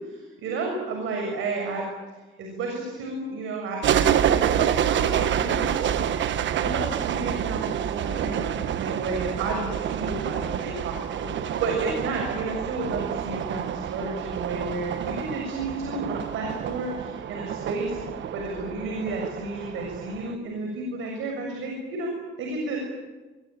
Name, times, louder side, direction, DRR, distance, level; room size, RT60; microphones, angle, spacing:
voice 1, 0.0-1.8 2.4-6.0 6.5-18.0 18.3-22.8, right 3 dB, 85° right, 2 dB, 6.9 m, -32 dB
sound 1, 3.8-20.3, right 9 dB, 70° right, 1.3 m, -28 dB
24.5 x 22.5 x 9.0 m, 1.2 s
cardioid pair, 90°, 20 cm